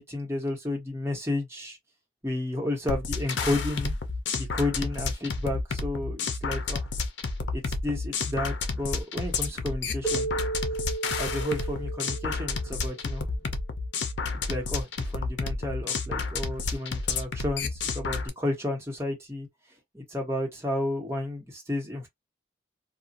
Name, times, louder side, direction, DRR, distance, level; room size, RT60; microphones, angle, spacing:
voice 1, 0.0-1.8 2.2-3.9 4.4-6.9 7.5-10.3 11.2-13.3 14.5-19.5 19.9-22.1, left 1 dB, 15° right, 1.2 m, -32 dB
sound 1, 2.9-18.3, left 4 dB, 80° left, 0.6 m, -30 dB
Keyboard (musical), 10.0-13.2, right 3 dB, 5° left, 0.7 m, -34 dB
2.7 x 2.3 x 2.5 m
head